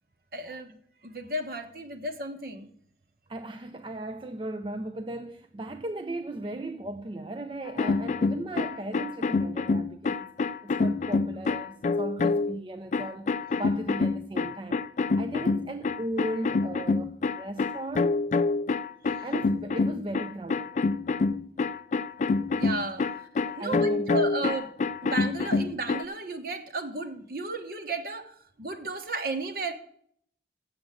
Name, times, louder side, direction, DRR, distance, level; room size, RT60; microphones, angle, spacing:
voice 1, 0.3-0.8 1.0-2.7 22.5-23.1 23.5-24.7 25.0-29.7, right 2 dB, 55° right, 1.1 m, -33 dB
voice 2, 3.3-10.3 10.6-14.8 15.2-18.2 19.2-20.8 23.6-24.3, right 1 dB, 30° right, 0.4 m, -37 dB
sound 1, 7.7-12.6 12.9-26.0, left 3 dB, 40° left, 0.3 m, -27 dB
7.8 x 7.1 x 7.6 m
head